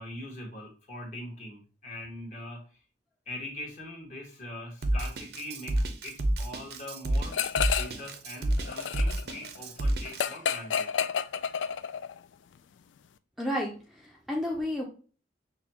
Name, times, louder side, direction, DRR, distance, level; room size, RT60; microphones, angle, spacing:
voice 1, 0.0-2.6 3.3-7.4 7.8-10.9, left 1 dB, 40° left, -1 dB, 1.4 m, -42 dB
Drum kit, 4.8-10.2, right 1 dB, 60° right, 0.6 m, -29 dB
sound 1, 7.3-8.1 8.4-12.2, left 8 dB, 90° left, 0.3 m, -30 dB
voice 2, 13.4-14.8, left 1 dB, ahead, -2 dB, 0.5 m, -32 dB
6.2 x 2.3 x 2.8 m, 0.37 s
head